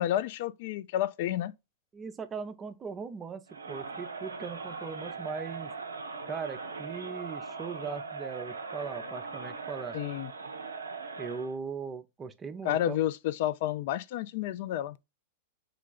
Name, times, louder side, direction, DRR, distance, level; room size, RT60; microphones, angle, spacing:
voice 1, 0.0-1.5 9.9-10.3 12.6-15.0, left 12 dB, 55° left, 0.3 m, -30 dB
voice 2, 1.9-5.7 6.2-10.0 11.2-13.0, right 5 dB, 20° right, 0.5 m, -39 dB
Crowd, 3.5-11.6, right 4 dB, 80° right, 0.5 m, -40 dB
3.3 x 2.4 x 3.7 m
figure-of-eight pair, 95°, 0 cm